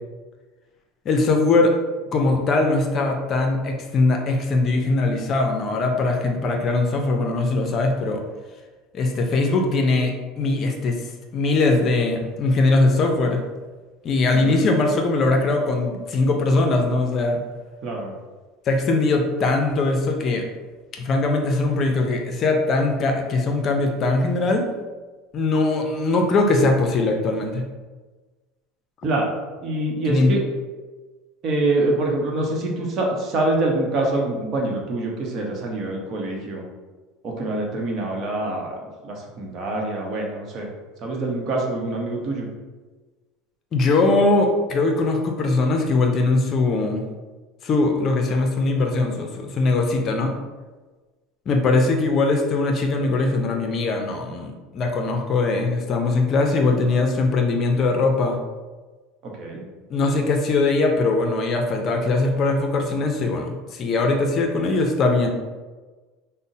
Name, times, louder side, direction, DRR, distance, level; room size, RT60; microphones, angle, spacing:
voice 1, 1.1-1.7 2.1-8.2 8.9-11.0 11.3-13.5 14.0-17.4 18.7-20.5 20.9-24.7 25.3-27.7 30.1-30.3 43.7-47.0 47.6-50.3 51.5-58.4 59.9-65.3, left 3 dB, 40° left, 3 dB, 0.5 m, -21 dB
voice 2, 14.3-14.7 17.8-18.1 29.0-29.3 29.6-30.4 31.4-36.6 37.2-38.8 39.0-40.7 41.0-42.5 59.2-59.6, right 2 dB, 45° right, 0 dB, 0.8 m, -25 dB
5.2 x 2.0 x 2.7 m, 1.3 s
supercardioid pair, 120°, 0 cm